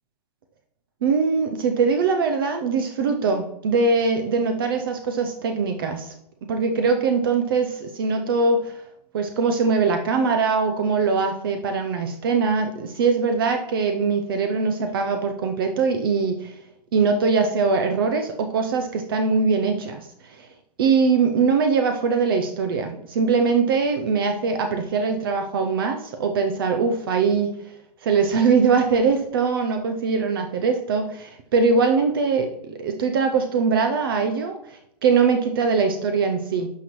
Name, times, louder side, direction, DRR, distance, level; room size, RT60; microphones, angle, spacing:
voice 1, 1.0-6.1 6.5-8.8 9.1-16.5 16.9-20.1 20.4-20.5 20.8-27.5 28.0-36.7, right 5 dB, 35° right, 6 dB, 0.6 m, -22 dB
11.0 x 5.8 x 3.1 m, 0.77 s
hypercardioid pair, 170°, 21 cm